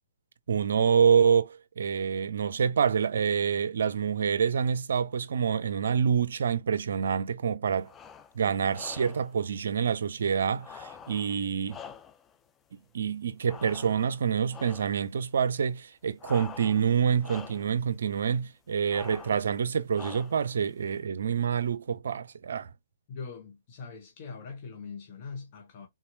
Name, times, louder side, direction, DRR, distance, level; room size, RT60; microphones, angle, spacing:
voice 1, 0.5-7.9 8.3-11.8 12.7-22.7, right 7 dB, 60° right, 0.4 m, -27 dB
sound 1, 7.8-8.3 8.7-9.3 10.6-12.4 13.5-14.2 14.5-15.0 16.2-16.9 17.2-17.7 18.9-19.5 19.9-20.5, left 6 dB, 15° left, 0.4 m, -46 dB
voice 2, 23.1-25.9, left 5 dB, 40° left, 0.9 m, -42 dB
3.8 x 2.8 x 2.6 m
figure-of-eight pair, 125°, 0 cm